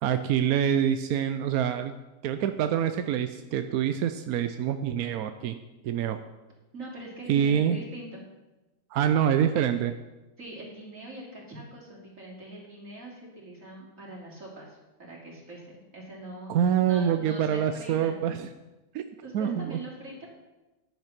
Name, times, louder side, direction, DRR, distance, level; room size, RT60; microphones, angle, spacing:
voice 1, 0.0-1.9 2.2-5.6 5.8-6.2 7.3-7.8 8.9-10.0 16.5-18.5 18.9-19.0 19.3-19.8, right 9 dB, 70° right, 9 dB, 0.9 m, -26 dB
voice 2, 6.7-8.2 10.4-16.5 16.8-18.2 19.2-20.3, right 1 dB, 40° right, -3 dB, 3.4 m, -43 dB
10.5 x 9.3 x 5.9 m, 1.1 s
omnidirectional pair, 2.0 m